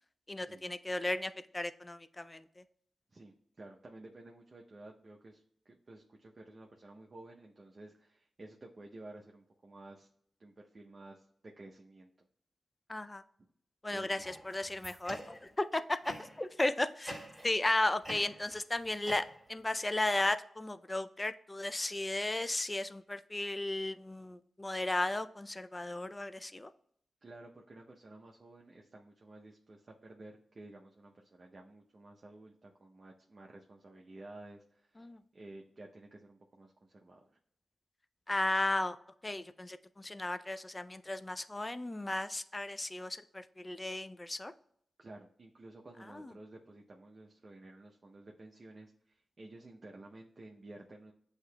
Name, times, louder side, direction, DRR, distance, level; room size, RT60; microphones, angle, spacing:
voice 1, 0.3-2.6 12.9-13.2 13.8-17.1 17.4-26.7 35.0-35.2 38.3-39.0 39.2-44.5 46.1-46.3, left 2 dB, 25° left, 12 dB, 0.4 m, -35 dB
voice 2, 3.1-10.1 10.4-12.3 13.9-14.4 27.2-37.3 45.0-51.1, right 2 dB, 45° right, 0 dB, 0.6 m, -53 dB
sound 1, 14.2-15.6 16.0-16.5 17.0-17.7 18.0-19.7, equal, 10° right, 1.8 m, -47 dB
7.9 x 2.8 x 2.2 m, 0.67 s
cardioid pair, 50°, 0 cm